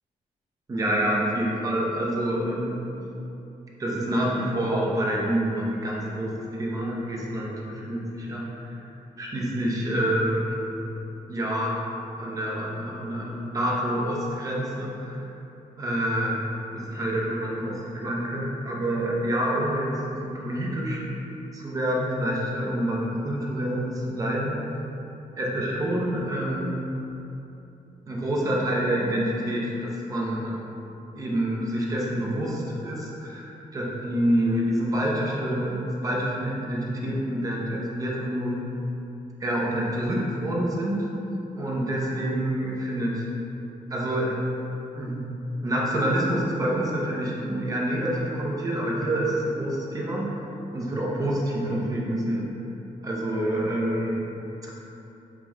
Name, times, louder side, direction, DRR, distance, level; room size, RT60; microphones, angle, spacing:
voice 1, 0.7-2.8 3.8-6.3 6.6-8.8 9.2-10.6 11.3-11.8 12.1-15.3 15.8-21.0 21.5-24.6 25.4-26.9 28.1-30.6 31.2-38.7 39.4-41.1 41.6-43.3 43.9-44.4 44.9-45.2 45.6-50.4 50.7-52.5 53.0-54.2, right 1 dB, 25° right, -4 dB, 0.5 m, -27 dB
4.5 x 2.1 x 3.5 m, 3.0 s
wide cardioid pair, 180°, 14 cm